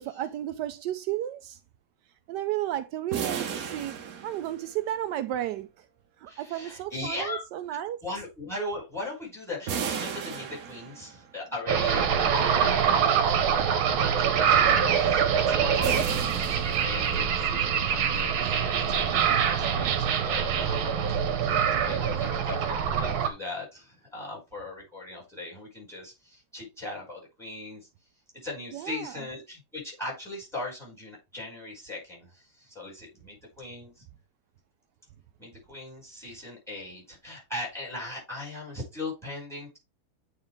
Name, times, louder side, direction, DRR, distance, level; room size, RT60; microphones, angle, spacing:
voice 1, 0.0-1.6 2.3-5.9 6.2-8.0 28.7-29.3, right 13 dB, 85° right, 0.9 m, -33 dB
sound 1, 3.1-5.0 9.7-11.3 15.8-17.4, right 7 dB, 55° right, 1.1 m, -35 dB
voice 2, 6.3-7.4 7.7-13.2 13.6-27.9 28.4-34.0 35.4-39.8, left 2 dB, ahead, 5.2 m, -39 dB
sound 2, 11.7-23.3, right 7 dB, 70° right, 1.7 m, -24 dB
8.8 x 4.5 x 3.3 m
omnidirectional pair, 2.4 m